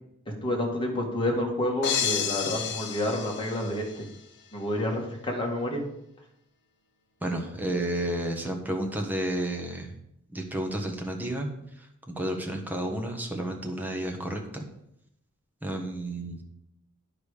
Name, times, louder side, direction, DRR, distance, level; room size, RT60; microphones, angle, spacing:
voice 1, 0.4-4.0 4.5-5.8, left 1 dB, 25° left, -1 dB, 1.9 m, -29 dB
sound 1, 1.8-4.1, left 7 dB, 55° left, 1.0 m, -31 dB
voice 2, 7.2-9.9 10.3-11.5 11.8-14.6 15.6-16.4, right 1 dB, 10° right, 2 dB, 1.2 m, -31 dB
10.5 x 5.1 x 5.0 m, 0.79 s
head